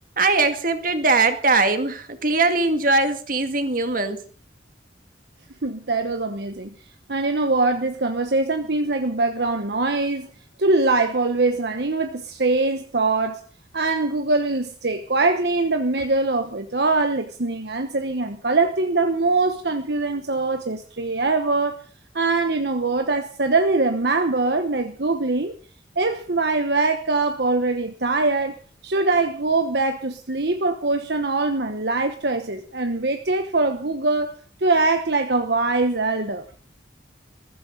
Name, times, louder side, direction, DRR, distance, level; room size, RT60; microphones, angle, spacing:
voice 1, 0.2-4.2, right 3 dB, 45° right, 2.1 m, -21 dB
voice 2, 5.6-6.7 7.1-10.3 10.6-13.4 13.7-21.8 22.1-25.5 26.0-28.5 28.8-34.3 34.6-36.4, right 3 dB, 60° right, 1.1 m, -22 dB
22.0 x 15.0 x 3.9 m
head